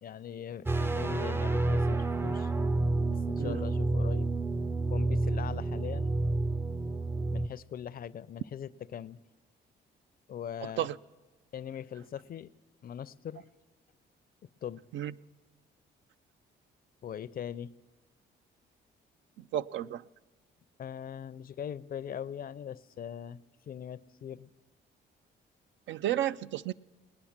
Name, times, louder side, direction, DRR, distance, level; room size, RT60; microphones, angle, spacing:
voice 1, 0.0-2.5 3.1-4.3 4.9-6.1 7.3-9.2 10.3-10.9 11.5-12.5 12.8-13.4 14.6-14.8 17.0-17.7 20.8-23.4 23.7-24.5, left 9 dB, 50° left, 18 dB, 0.5 m, -41 dB
sound 1, 0.7-7.5, right 2 dB, 10° right, 0.4 m, -29 dB
voice 2, 19.5-20.0 25.9-26.7, right 12 dB, 70° right, 15 dB, 0.4 m, -32 dB
19.5 x 9.7 x 7.3 m, 1.3 s
cardioid pair, 90°, 20 cm